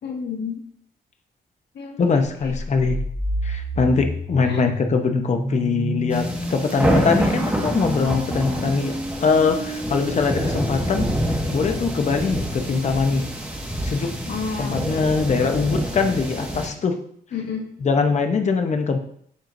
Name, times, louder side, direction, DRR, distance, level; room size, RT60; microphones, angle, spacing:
voice 1, 0.0-0.6 1.7-2.6 4.5-4.6 14.3-14.9 17.3-17.7, left 6 dB, 85° left, 0 dB, 1.7 m, -31 dB
voice 2, 2.0-3.0 3.4-8.9 9.2-11.1 11.5-13.2 13.8-14.1 14.6-17.0 17.8-19.0, left 4 dB, 40° left, 5 dB, 0.8 m, -22 dB
sound 1, 2.4-12.3, right 1 dB, 25° right, 2.9 m, -31 dB
sound 2, 6.1-16.7, equal, 10° right, 1.6 m, -27 dB
12.5 x 4.5 x 2.7 m, 0.65 s
wide cardioid pair, 130°, 17 cm